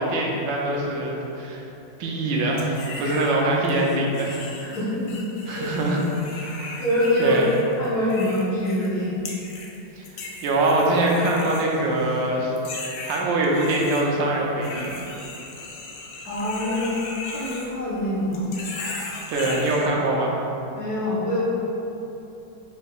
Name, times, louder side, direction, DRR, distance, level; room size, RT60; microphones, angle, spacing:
voice 1, 0.0-1.6 2.0-4.4 5.5-6.7 7.2-7.5 10.0-10.1 10.4-12.5 13.0-15.0 19.3-20.3, right 1 dB, 80° right, -2 dB, 1.3 m, -23 dB
sound 1, 2.6-3.3 3.6-8.9 9.3-9.8 10.0-12.2 12.6-14.0 14.6-18.0 18.3-19.9, left 3 dB, 85° left, 0.7 m, -37 dB
voice 2, 4.6-5.2 5.5-5.7 6.8-7.4 7.8-9.2 16.3-16.9 17.3-18.5 20.7-21.4, left 1 dB, 60° left, -9 dB, 1.5 m, -24 dB
5.3 x 3.5 x 2.3 m, 2.9 s
omnidirectional pair, 2.0 m